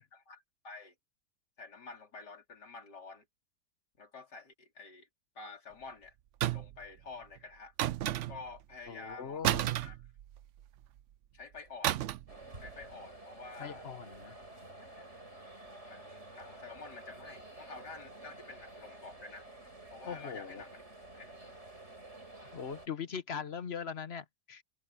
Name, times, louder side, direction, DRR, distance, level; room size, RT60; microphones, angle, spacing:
voice 1, 0.1-0.9 1.6-3.2 4.0-5.1 5.4-6.2 6.5-7.7 8.3-9.4 9.8-10.0 11.3-12.0 12.6-13.9 15.8-19.5 19.9-20.8 21.2-21.3, left 3 dB, 75° left, 4.2 m, -49 dB
sound 1, 6.4-6.9 7.8-8.6 9.4-10.6 11.8-12.4 12.6-12.8, right 13 dB, 70° right, 0.7 m, -32 dB
voice 2, 8.9-9.8 13.6-14.3 20.0-20.6 22.5-24.6, left 7 dB, 45° left, 1.1 m, -41 dB
sound 2, 12.3-22.9, right 2 dB, 40° right, 7.1 m, -51 dB
omnidirectional pair, 1.8 m